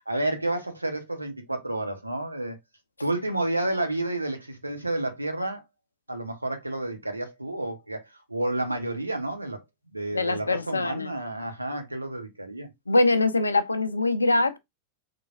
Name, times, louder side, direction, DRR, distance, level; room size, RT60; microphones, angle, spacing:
voice 1, 0.1-2.6 3.0-5.6 6.1-9.6 9.9-12.7, right 1 dB, 85° right, 0.8 m, -30 dB
voice 2, 10.1-11.1 12.9-14.6, left 2 dB, 80° left, 0.4 m, -23 dB
3.7 x 3.2 x 2.3 m
figure-of-eight pair, 90°, 0 cm